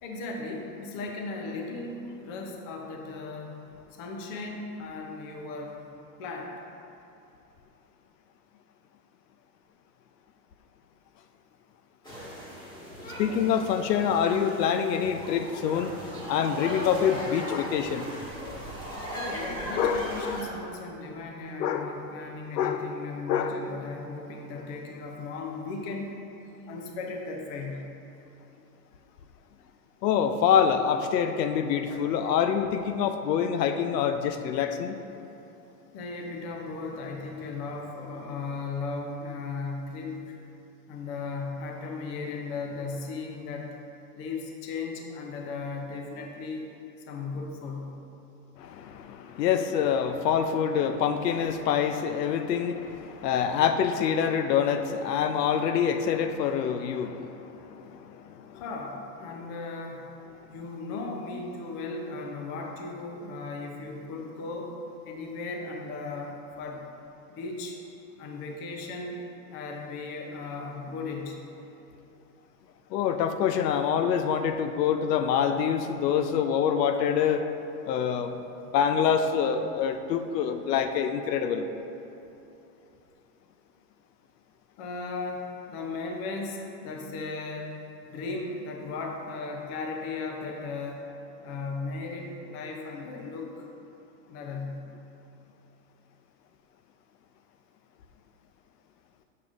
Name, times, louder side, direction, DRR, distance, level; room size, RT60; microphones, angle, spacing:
voice 1, 0.0-5.9 6.2-6.6 19.1-26.2 26.7-27.9 31.9-32.1 35.9-40.4 40.9-43.8 44.1-46.7 47.1-48.0 58.5-60.1 60.5-64.8 65.0-66.9 67.3-67.8 68.2-69.2 69.5-71.5 84.8-91.0 91.4-93.7 94.3-94.9, left 3 dB, 30° left, 2 dB, 0.6 m, -36 dB
sound 1, 12.0-20.4, equal, 10° left, 1.4 m, -38 dB
voice 2, 13.2-15.9 16.3-18.1 19.8-20.4 21.6-21.9 22.5-22.9 23.3-23.6 30.0-35.0 48.6-58.6 72.9-77.5 77.9-78.3 78.7-81.7, left 8 dB, 80° left, 8 dB, 0.6 m, -26 dB
6.9 x 6.5 x 2.5 m, 2.9 s
supercardioid pair, 140°, 48 cm